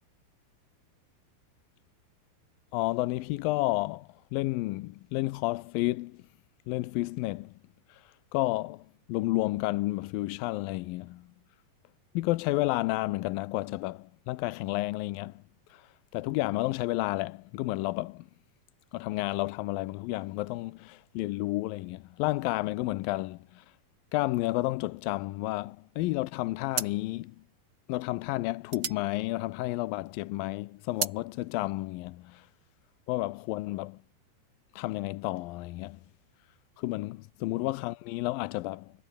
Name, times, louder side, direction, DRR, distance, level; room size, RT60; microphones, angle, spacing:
voice 1, 2.7-6.2 6.7-7.5 7.9-11.2 12.1-15.4 15.7-18.3 18.9-23.7 24.1-27.4 27.9-32.5 33.1-34.0 34.7-36.0 36.8-38.9, left 19 dB, 80° left, 2.3 m, -31 dB
sound 1, 26.0-26.3 26.7-30.1 30.4-31.2, right 6 dB, 35° right, 2.5 m, -36 dB
omnidirectional pair, 4.4 m